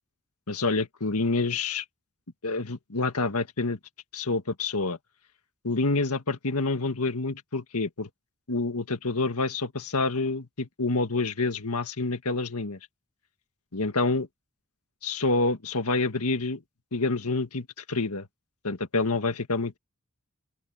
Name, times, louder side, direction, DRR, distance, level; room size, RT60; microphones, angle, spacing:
voice 1, 0.5-1.8 2.4-3.8 4.1-5.0 5.6-8.1 8.5-12.8 13.7-14.3 15.0-16.6 16.9-18.3 18.6-19.8, left 3 dB, 90° left, 1.8 m, -27 dB
open air
head